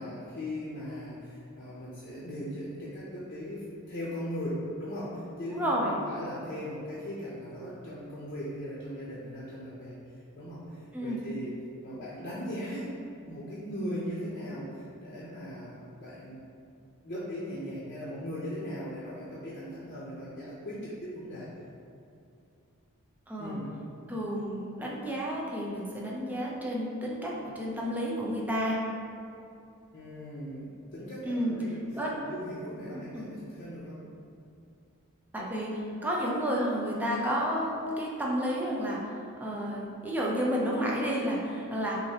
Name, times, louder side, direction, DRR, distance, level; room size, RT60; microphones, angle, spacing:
voice 1, 0.0-10.0 10.3-11.5 11.8-12.9 13.3-16.4 17.0-21.5 23.4-23.7 29.9-34.0, equal, 40° left, -8 dB, 0.7 m, -39 dB
voice 2, 5.5-6.0 10.9-11.2 23.3-23.6 24.1-28.8 31.2-31.6 31.9-32.1 32.9-33.3 35.3-42.0, equal, 10° right, -4 dB, 0.6 m, -31 dB
6.1 x 2.7 x 2.9 m, 2.6 s
head